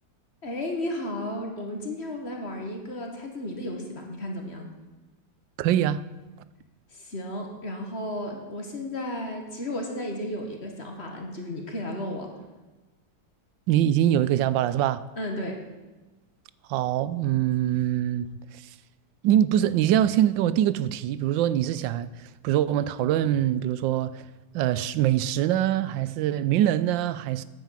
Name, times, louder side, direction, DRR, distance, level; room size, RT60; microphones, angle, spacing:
voice 1, 0.4-4.7 6.9-12.3 15.2-15.6, left 1 dB, 35° left, 1.7 m, -33 dB
voice 2, 5.6-6.0 13.7-15.0 16.7-18.3 19.2-22.1 22.4-24.2 24.5-27.4, right 11 dB, 85° right, 1.3 m, -23 dB
9.2 x 8.7 x 7.4 m
omnidirectional pair, 2.0 m